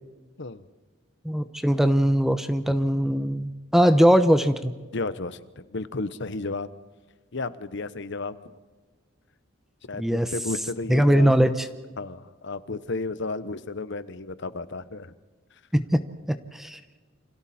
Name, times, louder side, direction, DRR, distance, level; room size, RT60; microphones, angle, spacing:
voice 1, 1.2-4.7 10.0-10.3 10.9-11.7 15.7-16.0 16.5-16.8, equal, ahead, 10 dB, 0.9 m, -20 dB
voice 2, 4.9-6.7 7.3-8.4 9.9-11.3 12.0-15.1, left 3 dB, 65° left, 14 dB, 1.0 m, -33 dB
29.0 x 26.0 x 4.4 m, 1.4 s
head